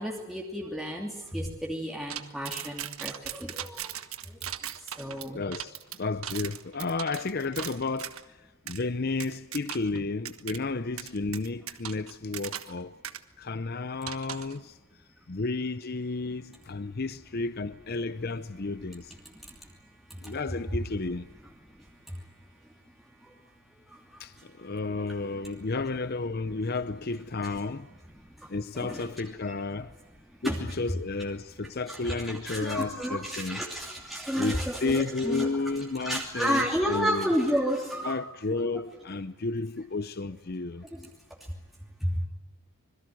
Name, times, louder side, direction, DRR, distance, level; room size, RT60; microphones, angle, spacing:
voice 1, 0.0-3.9 5.0-5.4 20.2-20.5 24.9-25.1 27.4-27.5 28.7-29.1 29.5-29.6 30.4-30.6 31.9-35.5 36.0-38.2 38.6-38.8 40.9-41.0 42.0-42.3, equal, ahead, 2.8 m, -31 dB
sound 1, 2.1-8.2 8.7-8.8 9.2-10.0 10.2-10.6 11.0-12.8 13.0-13.2 14.1-14.6, right 10 dB, 85° right, 1.5 m, -38 dB
voice 2, 5.3-8.4 8.7-12.9 13.4-14.8 15.3-19.1 20.2-21.3 24.2-27.9 28.5-29.9 30.4-33.6 34.4-37.3 38.0-40.9, left 3 dB, 45° left, 0.7 m, -32 dB
26.0 x 22.0 x 7.8 m
head